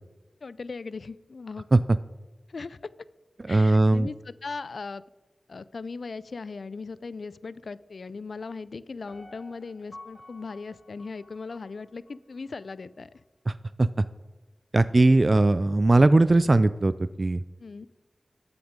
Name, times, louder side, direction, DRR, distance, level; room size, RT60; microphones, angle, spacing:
voice 1, 0.4-1.7 2.5-2.9 3.5-4.1 4.4-5.0 5.5-13.2 17.6-17.9, left 4 dB, 75° left, 18 dB, 0.3 m, -38 dB
voice 2, 3.5-4.1 13.5-14.0 14.7-16.9 17.2-17.4, right 2 dB, 45° right, 14 dB, 0.3 m, -19 dB
Piano, 9.1-12.2 12.6-12.7, left 2 dB, 25° left, 2.1 m, -50 dB
13.5 x 6.0 x 5.1 m, 1.2 s
cardioid pair, 45°, 0 cm